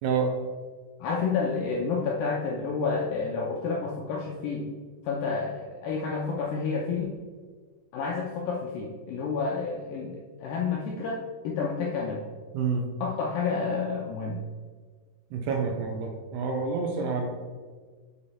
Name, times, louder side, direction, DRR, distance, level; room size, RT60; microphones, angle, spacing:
voice 1, 0.0-0.3 12.5-12.8 15.3-17.3, right 5 dB, 80° right, 2 dB, 2.7 m, -28 dB
voice 2, 1.0-4.7 5.0-7.2 7.9-12.2 13.0-14.4, left 4 dB, 85° left, -1 dB, 2.0 m, -30 dB
7.1 x 5.0 x 4.2 m, 1.5 s
omnidirectional pair, 4.9 m